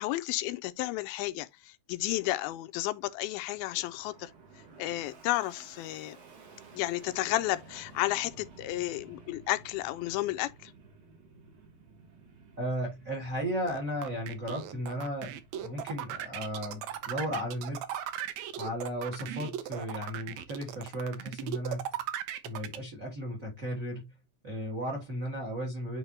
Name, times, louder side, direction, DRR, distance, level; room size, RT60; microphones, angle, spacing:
voice 1, 0.0-4.3 4.8-6.2 6.7-10.7, left 17 dB, 85° left, 2.4 m, -32 dB
Fixed-wing aircraft airplane, 2.6-19.2, right 4 dB, 55° right, 3.3 m, -55 dB
voice 2, 12.6-18.0 18.6-21.9 22.4-24.1 24.4-26.0, equal, 30° right, 1.6 m, -35 dB
sound 1, 13.7-22.8, right 11 dB, 85° right, 1.6 m, -37 dB
9.7 x 3.8 x 2.8 m
omnidirectional pair, 4.3 m